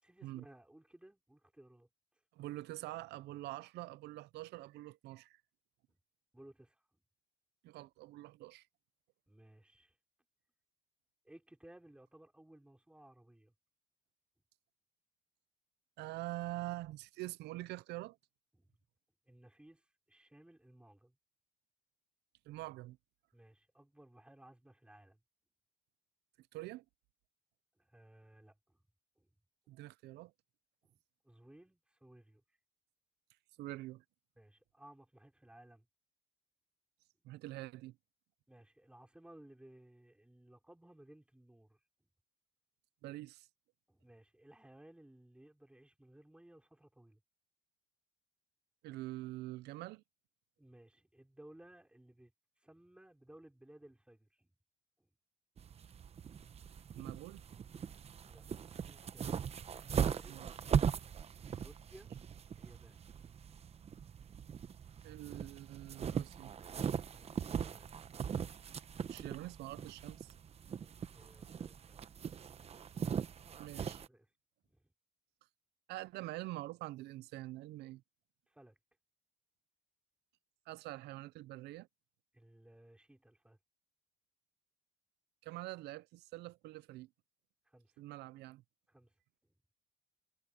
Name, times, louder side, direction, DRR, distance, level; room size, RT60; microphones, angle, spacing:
voice 1, 0.0-1.9 5.9-6.0 6.3-7.0 9.3-10.0 11.2-13.5 18.5-18.7 19.3-21.2 23.3-25.2 27.8-28.8 29.2-29.3 30.8-31.0 31.2-32.6 34.4-35.9 38.5-42.1 43.9-47.2 50.6-52.3 52.6-54.5 55.0-55.1 58.3-59.4 59.9-60.4 61.3-62.1 62.6-63.1 67.1-68.0 70.7-72.0 73.8-74.3 74.7-74.9 78.5-78.8 82.3-83.6 87.6-88.0 88.9-89.1, right 1 dB, 5° right, 4.8 m, -60 dB
voice 2, 2.3-5.4 7.6-8.7 16.0-18.2 22.5-23.0 26.4-26.8 29.7-30.3 33.6-34.0 37.2-38.0 43.0-43.5 48.8-50.0 56.9-57.4 60.3-60.5 65.0-66.5 69.1-70.3 73.6-74.0 75.9-78.0 80.7-81.9 85.4-87.1 88.0-88.6, right 17 dB, 80° right, 0.6 m, -45 dB
sound 1, 55.6-74.1, right 7 dB, 35° right, 1.0 m, -40 dB
cardioid pair, 110°, 17 cm